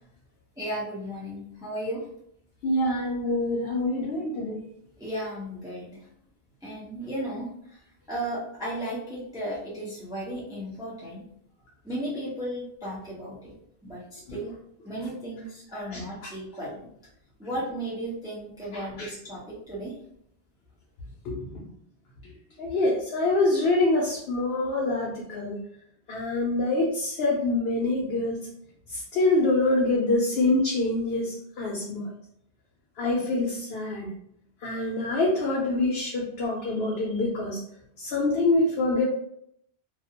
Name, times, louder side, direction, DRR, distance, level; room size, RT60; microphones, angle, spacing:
voice 1, 0.6-2.0 5.0-6.0 6.6-7.5 8.1-11.2 11.8-13.5 13.8-14.5 14.8-16.8 17.4-19.9, right 1 dB, 5° right, -7 dB, 0.6 m, -35 dB
voice 2, 2.6-4.6 15.7-16.0 18.7-19.1 21.3-21.6 22.6-25.6 26.1-28.4 28.9-32.1 33.0-34.1 34.6-37.6 38.0-39.0, left 2 dB, 75° left, -3 dB, 0.8 m, -25 dB
2.4 x 2.0 x 2.8 m, 0.69 s
omnidirectional pair, 1.0 m